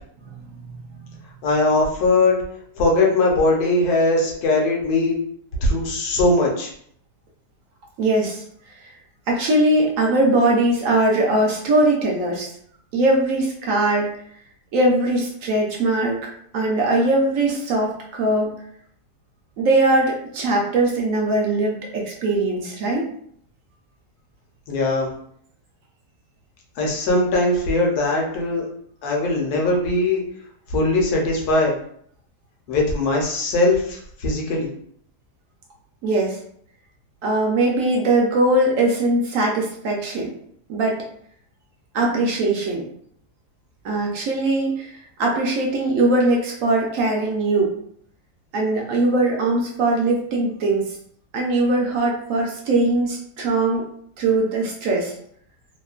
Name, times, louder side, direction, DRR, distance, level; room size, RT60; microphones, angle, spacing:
voice 1, 0.2-1.2 8.0-8.4 8.8-8.9 9.3-12.5 12.9-14.1 14.7-16.2 16.5-18.6 19.6-23.1 36.0-36.4 37.2-40.3 40.7-41.0 41.9-42.9 43.8-47.7 48.5-51.0 51.3-53.8 54.2-55.1, right 2 dB, 70° right, -1 dB, 0.8 m, -21 dB
voice 2, 1.4-2.4 2.8-5.2 5.6-6.7 24.7-25.1 26.8-28.7 29.0-30.2 30.7-31.8 32.7-34.7, left 2 dB, 70° left, -1 dB, 1.1 m, -20 dB
2.9 x 2.1 x 2.3 m, 0.65 s
omnidirectional pair, 1.8 m